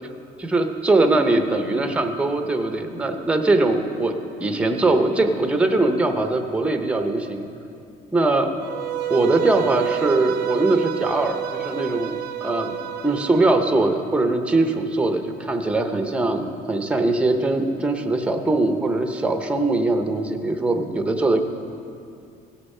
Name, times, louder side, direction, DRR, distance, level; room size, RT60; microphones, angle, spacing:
voice 1, 0.4-4.1 4.4-7.5 8.1-8.5 9.1-12.8 13.0-21.4, right 2 dB, 5° right, 6 dB, 0.6 m, -21 dB
Bowed string instrument, 8.6-13.6, right 12 dB, 75° right, 0.6 m, -28 dB
17.0 x 6.7 x 5.5 m, 2.5 s
cardioid pair, 160°, 17 cm